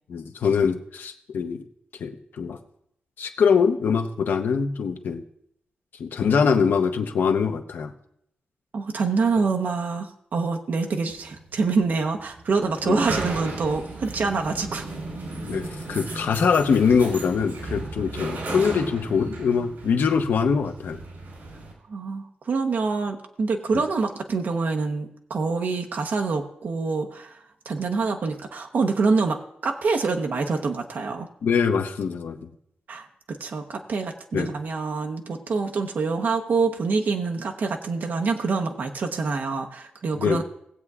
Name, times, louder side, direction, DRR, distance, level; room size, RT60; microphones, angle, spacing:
voice 1, 0.1-1.6 2.0-2.6 3.2-5.2 6.0-7.9 12.8-13.0 15.4-21.0 31.4-32.4 34.3-34.5 40.2-40.4, left 6 dB, 85° left, 6 dB, 0.9 m, -23 dB
voice 2, 8.7-14.9 21.9-27.4 27.6-31.3 32.9-40.4, right 4 dB, 65° right, 3 dB, 1.0 m, -26 dB
sound 1, 11.1-21.7, right 2 dB, 85° right, 4.1 m, -35 dB
19.5 x 8.0 x 2.4 m, 0.74 s
wide cardioid pair, 130°, 3 cm